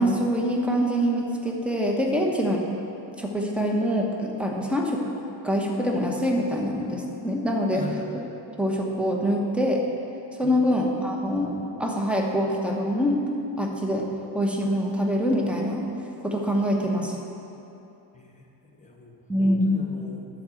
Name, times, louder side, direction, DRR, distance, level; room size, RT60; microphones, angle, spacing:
voice 1, 0.0-2.6 3.2-5.1 5.4-7.8 8.6-9.8 10.4-13.2 13.6-14.1 14.3-15.8 16.2-17.2 19.3-19.8, equal, ahead, 0 dB, 1.1 m, -24 dB
voice 2, 7.7-8.0 10.4-11.3 18.1-20.3, equal, 15° left, 0 dB, 1.3 m, -42 dB
10.5 x 4.9 x 7.7 m, 2.9 s
cardioid pair, 115°, 47 cm